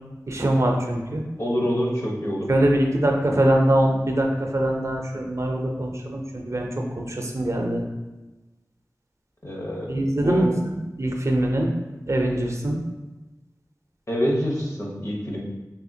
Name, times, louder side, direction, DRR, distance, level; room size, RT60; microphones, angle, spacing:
voice 1, 0.3-1.2 2.5-7.8 9.9-11.7 12.1-12.8, right 1 dB, 50° right, 1 dB, 0.5 m, -23 dB
voice 2, 1.4-2.5 9.4-9.9 10.2-10.5 14.1-15.4, equal, 50° left, -2 dB, 0.8 m, -26 dB
3.5 x 2.8 x 2.7 m, 1.1 s
wide cardioid pair, 50°, 7 cm